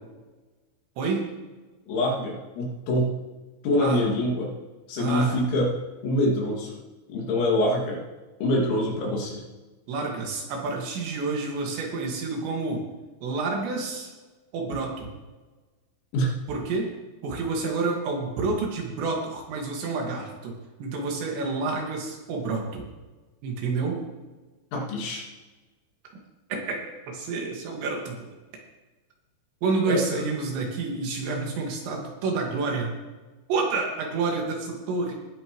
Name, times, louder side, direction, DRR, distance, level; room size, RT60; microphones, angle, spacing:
voice 1, 1.0-1.3 3.8-4.0 5.0-5.4 9.9-12.9 13.2-14.1 14.5-15.1 16.5-16.9 17.2-20.5 20.8-22.9 23.4-24.0 26.5-26.8 27.1-28.3 29.6-32.9 33.5-35.1, right 3 dB, 75° right, 0 dB, 4.2 m, -29 dB
voice 2, 1.9-3.1 3.6-4.5 4.9-5.7 6.0-6.8 7.1-8.0 8.4-9.4 16.1-16.3 24.7-25.2 29.9-30.2, left 1 dB, 80° left, -2 dB, 4.8 m, -25 dB
19.5 x 9.7 x 3.1 m, 1.2 s
omnidirectional pair, 5.3 m